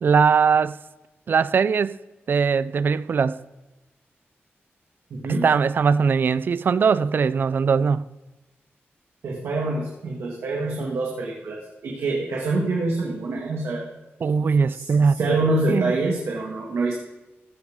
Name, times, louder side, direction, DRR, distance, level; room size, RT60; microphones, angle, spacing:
voice 1, 0.0-0.8 1.3-2.0 2.3-3.4 5.4-8.1 14.2-15.2 15.7-15.9, right 5 dB, 50° right, 0.4 m, -20 dB
voice 2, 5.1-5.5 9.2-13.9 14.7-14.9 15.1-16.9, right 2 dB, 90° right, 2.0 m, -25 dB
15.5 x 13.5 x 3.7 m
wide cardioid pair, 170°, 4 cm